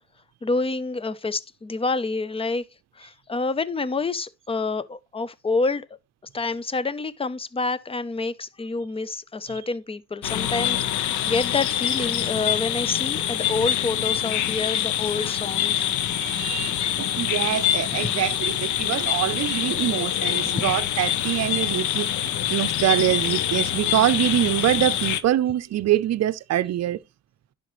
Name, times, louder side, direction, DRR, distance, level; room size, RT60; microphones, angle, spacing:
voice 1, 0.4-2.6 3.0-5.9 6.3-15.9 18.0-18.1 20.5-20.6, left 3 dB, 20° left, 0.6 m, -28 dB
sound 1, 10.2-25.2, left 11 dB, 75° left, 0.7 m, -25 dB
voice 2, 16.0-27.0, right 12 dB, 60° right, 0.6 m, -24 dB
10.5 x 5.2 x 3.1 m
cardioid pair, 90°, 30 cm